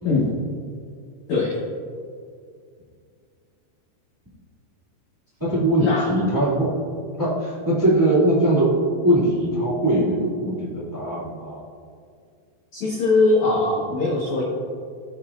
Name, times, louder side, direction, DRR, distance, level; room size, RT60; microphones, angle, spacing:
voice 1, 5.4-6.7 7.2-11.6, right 1 dB, 10° right, -7 dB, 0.9 m, -21 dB
voice 2, 12.7-14.4, left 3 dB, 90° left, -5 dB, 1.6 m, -21 dB
17.5 x 7.2 x 2.5 m, 2.2 s
omnidirectional pair, 5.1 m